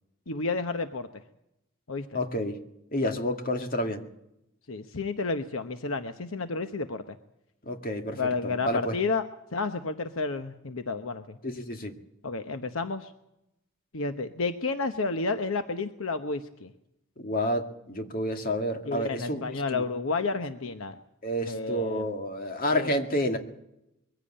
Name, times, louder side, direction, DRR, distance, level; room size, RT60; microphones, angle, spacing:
voice 1, 0.3-1.2 1.9-2.2 4.7-7.2 8.2-11.4 12.2-13.1 13.9-16.7 18.8-21.0 21.5-22.0 22.7-23.0, left 3 dB, 70° left, 8 dB, 1.0 m, -31 dB
voice 2, 2.1-2.6 2.9-4.0 7.7-9.0 11.4-11.9 17.2-19.4 19.7-19.8 21.2-23.4, equal, 45° left, 5 dB, 2.1 m, -29 dB
22.5 x 15.5 x 8.8 m, 0.84 s
head